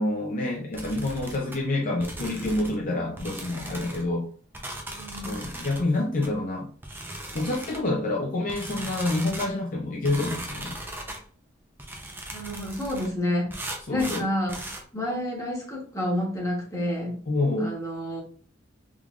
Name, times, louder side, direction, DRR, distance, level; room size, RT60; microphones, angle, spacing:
voice 1, 0.0-4.3 5.2-6.7 7.3-10.8 13.9-14.2 17.3-17.7, left 2 dB, 40° left, 0.5 m, -27 dB
sound 1, 0.7-1.6 2.0-2.8 3.2-4.0 4.5-5.8 6.2-6.3 6.8-7.9 8.5-9.5 10.0-11.2 11.8-13.1 13.5-14.8, right 1 dB, 10° right, 0.5 m, -38 dB
voice 2, 4.9-5.5 12.3-13.5 13.9-14.6 14.9-17.2 17.6-18.2, left 1 dB, 15° left, 1.1 m, -29 dB
3.6 x 3.1 x 2.4 m
head